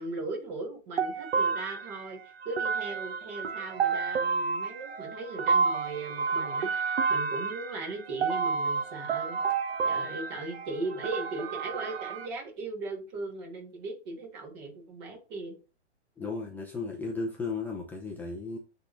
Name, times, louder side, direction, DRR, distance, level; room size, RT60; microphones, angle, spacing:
voice 1, 0.0-2.2 2.4-9.4 9.8-15.6, right 2 dB, 40° right, 2.9 m, -38 dB
sound 1, 1.0-12.3, right 5 dB, 60° right, 1.1 m, -30 dB
voice 2, 16.2-18.6, left 3 dB, 5° left, 0.6 m, -35 dB
9.7 x 3.8 x 2.6 m
hypercardioid pair, 135°, 35 cm